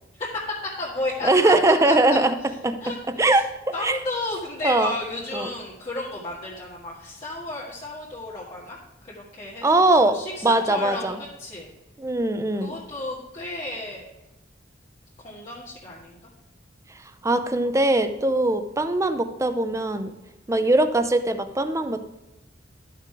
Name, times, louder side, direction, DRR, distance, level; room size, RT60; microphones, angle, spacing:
voice 1, 0.2-2.2 2.8-3.4 3.7-8.8 9.0-11.7 12.6-14.1 15.2-16.2, left 2 dB, 30° left, -7 dB, 1.8 m, -33 dB
voice 2, 1.2-3.5 3.8-4.0 4.6-4.9 5.3-5.5 9.6-11.2 12.0-12.7 17.2-20.1 20.5-22.0, right 2 dB, 15° right, 9 dB, 0.6 m, -21 dB
12.5 x 5.8 x 4.6 m, 0.99 s
head